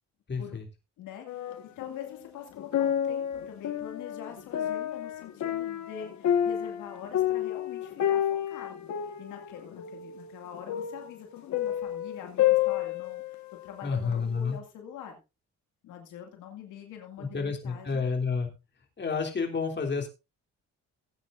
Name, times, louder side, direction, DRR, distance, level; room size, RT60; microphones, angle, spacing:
voice 1, 0.3-0.6 13.8-14.6 17.2-18.5 19.0-20.1, left 5 dB, 35° left, 2 dB, 3.2 m, -30 dB
voice 2, 1.0-8.9 9.2-15.2 15.8-18.0, left 9 dB, 85° left, 3 dB, 2.3 m, -45 dB
sound 1, 1.3-2.2 2.5-13.6 14.1-14.2, left 11 dB, 70° left, 1.5 m, -30 dB
17.5 x 9.1 x 2.6 m, 0.27 s
cardioid pair, 90°, 30 cm